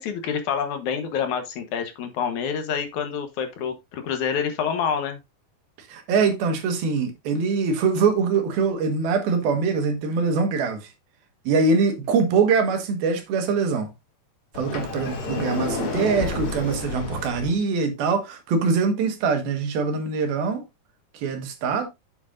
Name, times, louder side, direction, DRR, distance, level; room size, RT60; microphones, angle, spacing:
voice 1, 0.0-5.2, left 7 dB, 65° left, 2.3 m, -27 dB
voice 2, 5.8-10.9 11.5-13.9 14.5-20.6 21.1-21.9, right 5 dB, 85° right, 3.4 m, -23 dB
Sliding door, 14.5-17.5, left 3 dB, 45° left, 2.0 m, -30 dB
9.4 x 7.3 x 2.6 m
omnidirectional pair, 4.2 m